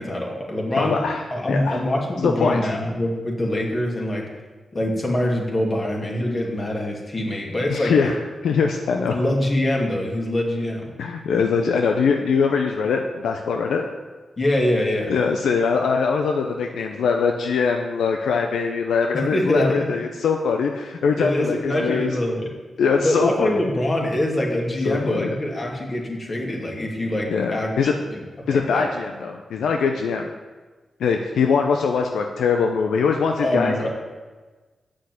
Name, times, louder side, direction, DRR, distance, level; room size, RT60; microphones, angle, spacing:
voice 1, 0.0-1.0 1.3-4.3 4.7-7.9 9.1-10.9 14.4-15.1 19.1-19.9 21.2-22.5 23.0-28.9 33.4-33.9, left 1 dB, 40° left, -1 dB, 2.6 m, -24 dB
voice 2, 0.8-1.8 2.2-2.6 7.7-8.2 8.4-9.2 11.0-13.9 15.1-22.1 22.8-23.6 24.8-25.3 27.3-27.9 28.5-30.3 31.0-33.9, left 5 dB, 85° left, 3 dB, 0.6 m, -22 dB
7.6 x 6.4 x 8.0 m, 1.3 s
cardioid pair, 50°, 0 cm